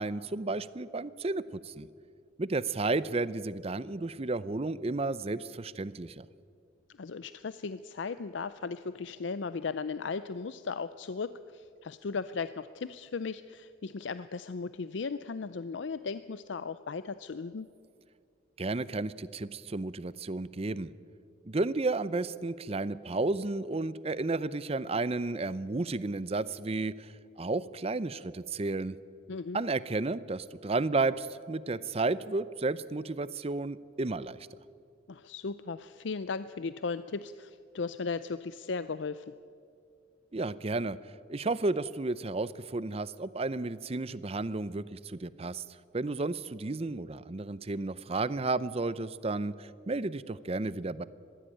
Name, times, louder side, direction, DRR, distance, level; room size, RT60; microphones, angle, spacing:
voice 1, 0.0-1.9 2.4-6.2 18.6-20.9 21.5-27.1 27.4-29.0 29.5-34.4 40.3-41.0 41.3-45.6 45.9-51.0, right 3 dB, 30° right, 17 dB, 0.6 m, -32 dB
voice 2, 7.0-17.7 29.3-29.6 35.1-39.3, left 4 dB, 65° left, 14 dB, 0.5 m, -36 dB
21.5 x 15.0 x 9.1 m, 2.3 s
head